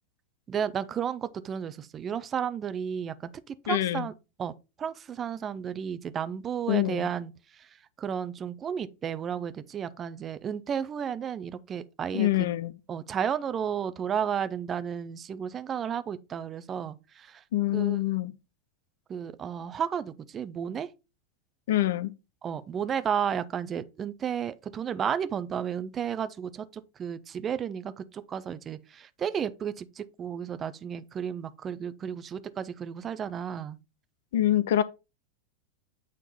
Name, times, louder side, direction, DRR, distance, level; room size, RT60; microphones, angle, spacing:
voice 1, 0.5-4.1 4.4-4.5 4.8-7.3 7.6-7.7 8.0-12.3 12.9-17.4 17.7-18.0 19.1-20.9 22.4-33.8, right 8 dB, 25° right, 0.6 m, -33 dB
voice 2, 3.7-4.1 6.7-7.1 12.1-12.7 17.5-18.3 21.7-22.1 34.3-34.8, left 13 dB, 55° left, 0.5 m, -25 dB
9.0 x 3.7 x 4.2 m
figure-of-eight pair, 90°, 0 cm